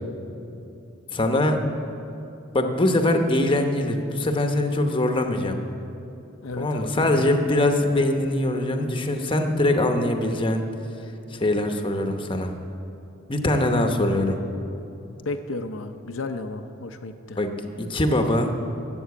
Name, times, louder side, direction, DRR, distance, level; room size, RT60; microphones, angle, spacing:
voice 1, 1.1-1.6 2.5-5.6 6.6-10.6 11.3-12.5 13.3-14.4 17.4-17.5 17.8-18.5, left 1 dB, 25° left, 5 dB, 0.9 m, -22 dB
voice 2, 6.4-7.1 15.3-17.4, left 2 dB, 85° left, 6 dB, 0.6 m, -33 dB
12.5 x 7.7 x 8.3 m, 2.8 s
head